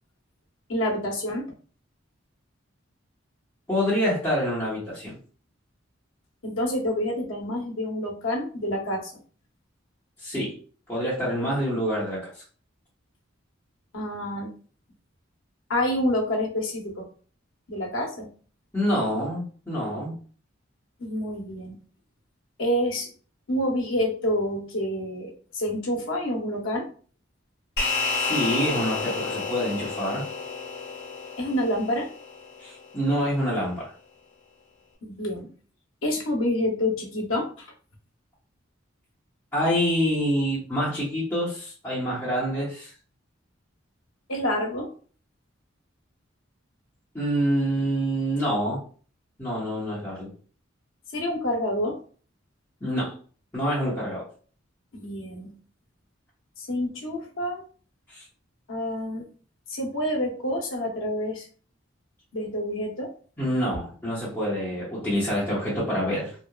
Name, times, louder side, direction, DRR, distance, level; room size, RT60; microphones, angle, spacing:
voice 1, 0.7-1.4 6.4-9.1 13.9-14.5 15.7-17.1 17.7-18.3 21.0-21.8 22.6-23.1 23.5-26.9 31.4-32.1 35.0-35.5 36.0-37.7 44.3-44.9 51.1-52.0 54.9-55.5 56.6-57.6 58.7-59.2 59.7-61.5 62.3-63.1, left 1 dB, 85° left, 0 dB, 0.8 m, -28 dB
voice 2, 3.7-5.2 10.2-10.5 10.9-12.3 18.7-20.1 28.2-30.2 32.6-33.9 39.5-42.9 47.1-48.8 49.4-50.3 52.8-53.1 53.5-54.3 58.1-58.2 63.4-66.3, equal, 15° left, -12 dB, 1.0 m, -26 dB
sound 1, 27.8-32.4, left 4 dB, 60° left, 0.9 m, -30 dB
2.8 x 2.2 x 2.3 m, 0.41 s
head